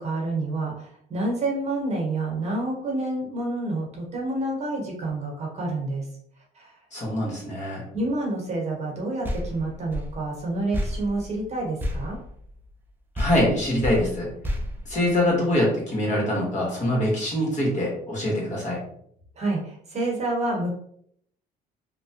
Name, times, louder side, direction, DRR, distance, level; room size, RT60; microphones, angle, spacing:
voice 1, 0.0-6.0 6.6-6.7 7.9-12.2 19.4-20.8, right 2 dB, 40° right, -2 dB, 1.0 m, -28 dB
voice 2, 6.9-7.9 13.2-14.3 14.9-18.8, left 1 dB, 45° left, -3 dB, 1.3 m, -24 dB
sound 1, 9.2-12.9 13.1-15.6, left 1 dB, 10° right, 0.4 m, -32 dB
2.8 x 2.1 x 2.8 m, 0.68 s
cardioid pair, 110°, 17 cm